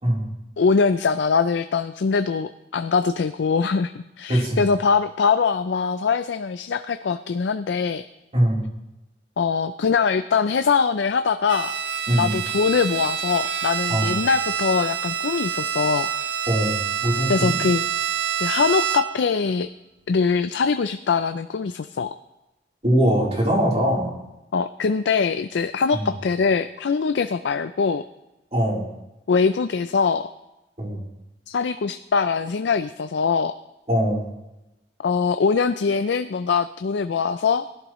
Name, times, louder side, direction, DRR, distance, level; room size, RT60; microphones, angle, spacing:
voice 1, 0.6-8.0 9.4-11.7 12.2-16.1 17.3-17.8 18.4-19.7 20.1-22.1 24.5-28.0 29.3-30.3 31.5-33.5 35.0-37.7, left 5 dB, 75° left, 11 dB, 0.4 m, -22 dB
voice 2, 4.3-4.6 8.3-8.6 12.1-12.3 13.9-14.1 16.5-17.5 22.8-24.1 25.9-26.1 28.5-28.9 30.8-31.0 33.9-34.2, equal, 35° right, -4 dB, 3.6 m, -21 dB
Bowed string instrument, 11.5-19.3, right 9 dB, 75° right, 0.6 m, -27 dB
17.5 x 11.5 x 3.1 m, 0.96 s
head